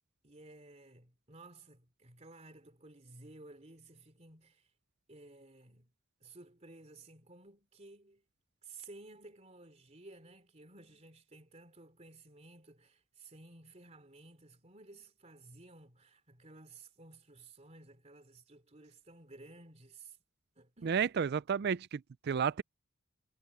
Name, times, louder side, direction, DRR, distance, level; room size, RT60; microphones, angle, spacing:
voice 1, 0.2-4.7 5.1-5.9 6.2-8.2 8.6-20.2 20.6-21.2, right 2 dB, 30° right, 3.3 m, -55 dB
voice 2, 20.8-22.6, right 6 dB, 50° right, 0.4 m, -32 dB
head